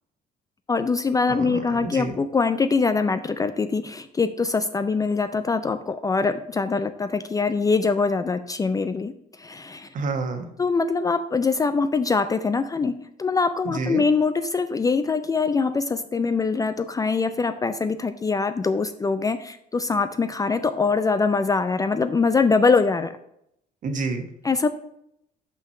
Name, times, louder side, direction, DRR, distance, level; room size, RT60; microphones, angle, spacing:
voice 1, 0.7-9.1 9.4-9.9 10.6-23.1 24.4-24.7, left 4 dB, 20° left, 11 dB, 0.4 m, -23 dB
voice 2, 1.3-2.1 9.9-10.5 13.7-14.0 23.8-24.2, right 3 dB, 50° right, 6 dB, 1.2 m, -28 dB
5.7 x 5.0 x 5.5 m, 0.76 s
cardioid pair, 110°, 17 cm